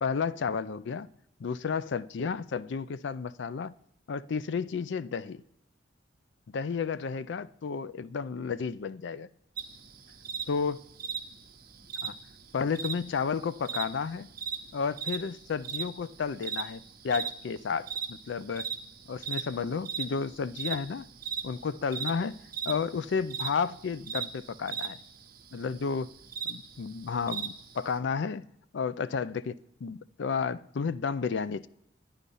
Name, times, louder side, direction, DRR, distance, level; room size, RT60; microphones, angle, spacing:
voice 1, 0.0-1.1 1.4-3.8 4.1-5.4 6.5-9.3 10.5-10.8 12.0-12.2 12.5-14.3 14.7-18.7 19.1-21.1 21.4-22.4 22.7-25.0 25.5-26.1 26.4-28.4 28.7-31.7, left 5 dB, 65° left, 0.4 m, -32 dB
sound 1, 9.6-28.0, right 6 dB, 50° right, 0.9 m, -38 dB
10.0 x 9.9 x 5.4 m
head